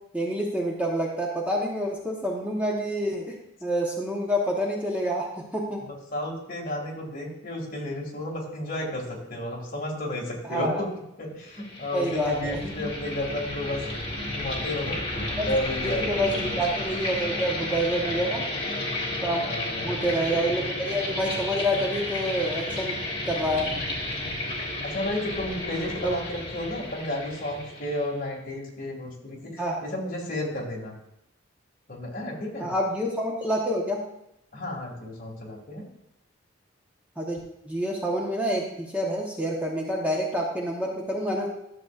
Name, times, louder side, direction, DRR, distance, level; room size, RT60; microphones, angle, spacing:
voice 1, 0.1-3.3 3.6-5.3 5.5-5.8 10.5-10.8 11.9-12.9 15.4-15.5 15.8-18.4 19.2-19.4 19.8-22.9 23.3-23.7 26.0-26.1 29.6-29.8 32.6-34.0 37.2-37.4 37.7-41.5, equal, 5° right, -2 dB, 1.0 m, -27 dB
voice 2, 5.8-10.9 11.2-13.8 14.3-15.0 15.5-16.6 18.4-18.5 19.4-20.0 24.8-31.0 31.9-32.7 34.5-35.8, left 1 dB, 45° left, -1 dB, 2.1 m, -32 dB
sound 1, 11.5-28.2, left 1 dB, 25° left, 1.8 m, -32 dB
12.5 x 7.2 x 2.4 m, 0.81 s
head